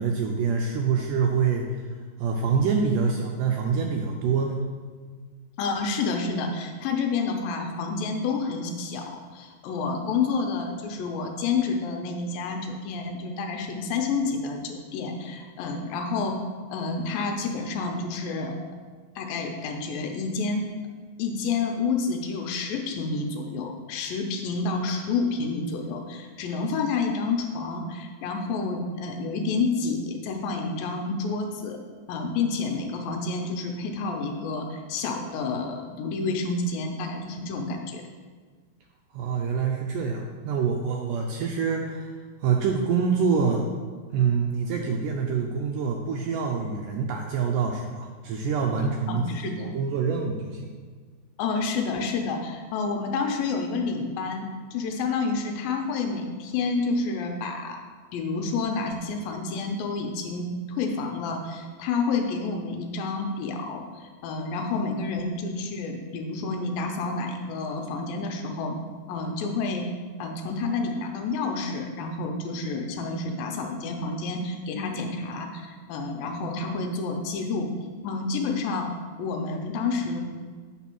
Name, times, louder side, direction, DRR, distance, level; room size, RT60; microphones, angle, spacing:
voice 1, 0.0-1.8 2.2-4.6 39.1-42.1 42.4-43.7 44.1-50.7, right 5 dB, 85° right, 2 dB, 1.9 m, -26 dB
voice 2, 5.6-16.4 16.7-18.5 19.2-20.6 21.2-31.8 32.1-38.0 49.1-49.7 51.4-54.5 54.7-57.8 58.1-68.8 69.1-69.9 70.2-77.7 78.0-78.9 79.2-80.3, left 4 dB, 80° left, 3 dB, 2.5 m, -29 dB
8.3 x 4.0 x 6.0 m, 1.5 s
omnidirectional pair, 4.3 m